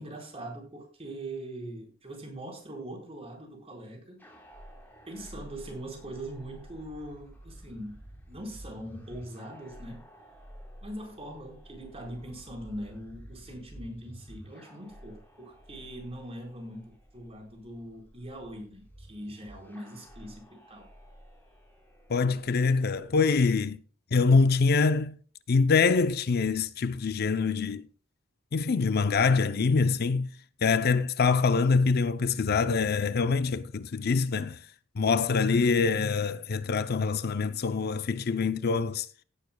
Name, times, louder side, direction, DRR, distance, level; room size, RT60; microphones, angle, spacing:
voice 1, 0.0-4.2 5.1-8.0 8.3-10.0 10.8-20.9 23.3-23.4, right 1 dB, 30° right, 4.3 m, -42 dB
sound 1, 4.2-23.6, equal, 10° left, 3.6 m, -51 dB
voice 2, 22.1-23.8 24.1-25.2 25.5-27.9 28.5-30.3 30.6-34.6 35.0-39.1, left 4 dB, 50° left, 0.5 m, -25 dB
16.5 x 11.0 x 2.2 m
head